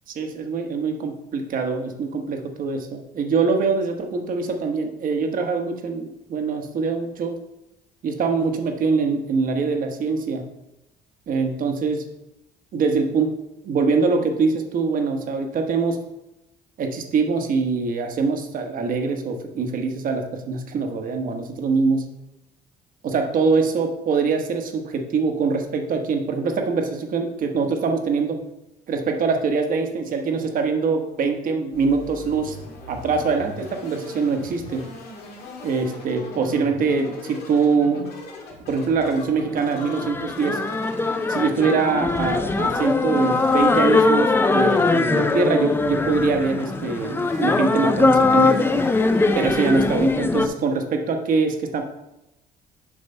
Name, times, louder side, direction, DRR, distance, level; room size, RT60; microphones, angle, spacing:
voice 1, 0.1-7.3 8.0-10.4 11.3-12.0 12.7-13.3 13.6-16.0 16.8-22.1 23.0-28.4 28.9-32.6 32.9-34.9 35.6-38.0 38.7-40.6 41.3-48.9 49.3-51.8, right 4 dB, 55° right, 4 dB, 1.1 m, -23 dB
sound 1, 31.7-50.2, left 1 dB, 70° left, 1.7 m, -39 dB
sound 2, 39.5-50.5, left 3 dB, 15° left, 0.4 m, -21 dB
7.3 x 3.2 x 5.4 m, 0.90 s
cardioid pair, 110°, 17 cm